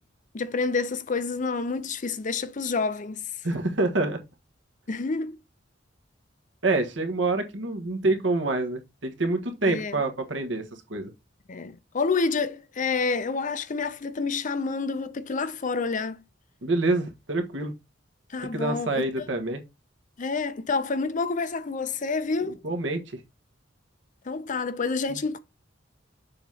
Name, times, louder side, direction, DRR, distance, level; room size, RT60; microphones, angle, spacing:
voice 1, 0.3-3.2 4.9-5.4 9.7-10.0 11.5-16.2 18.3-19.3 20.2-22.6 24.3-25.4, left 4 dB, 40° left, 0.6 m, -28 dB
voice 2, 3.4-4.2 6.6-11.1 16.6-17.7 18.4-19.6 22.6-23.2, right 2 dB, 70° right, 1.5 m, -27 dB
7.0 x 3.0 x 5.5 m
head